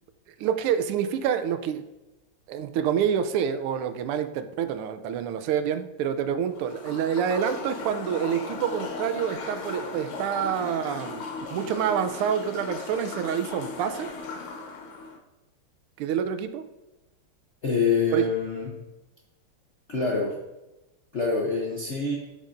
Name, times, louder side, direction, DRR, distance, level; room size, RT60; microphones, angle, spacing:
voice 1, 0.4-1.8 2.5-14.1 16.0-16.6 18.1-18.2, right 8 dB, 90° right, 10 dB, 1.5 m, -27 dB
sound 1, 6.5-15.2, left 4 dB, 80° left, 1.9 m, -37 dB
voice 2, 17.6-18.8 19.9-20.4 21.1-22.2, left 4 dB, 65° left, -2 dB, 0.7 m, -26 dB
11.5 x 5.4 x 2.5 m, 0.99 s
omnidirectional pair, 2.4 m